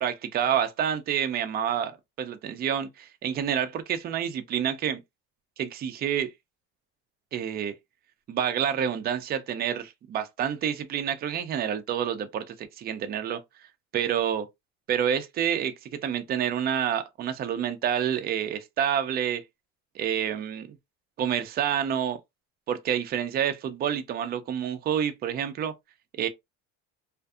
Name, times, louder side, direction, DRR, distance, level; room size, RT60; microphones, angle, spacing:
voice 1, 0.0-1.9 2.2-5.0 5.6-6.3 7.3-7.7 8.3-13.4 13.9-14.5 14.9-19.4 19.9-20.7 21.2-22.2 22.7-25.7 26.1-26.3, right 9 dB, 30° right, 0.4 m, -28 dB
2.6 x 2.5 x 2.3 m
cardioid pair, 135°, 30 cm